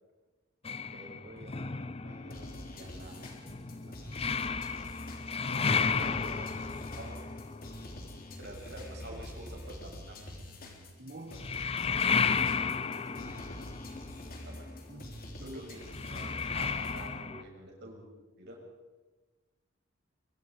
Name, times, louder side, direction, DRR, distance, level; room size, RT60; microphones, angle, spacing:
voice 1, 0.6-4.5 5.3-7.3 8.4-11.0 11.3-11.6 12.2-13.8 14.4-14.7 15.4-18.0 18.4-18.6, right 1 dB, 60° right, -1 dB, 6.8 m, -49 dB
sound 1, 0.7-9.1 11.3-17.4, left 5 dB, 30° left, 0.6 m, -34 dB
sound 2, 2.3-17.1, left 1 dB, 50° left, 3.5 m, -46 dB
voice 2, 5.5-6.5 11.0-11.4 14.9-15.7, right 2 dB, 45° right, 3 dB, 1.7 m, -45 dB
24.5 x 23.5 x 4.9 m, 1.2 s
head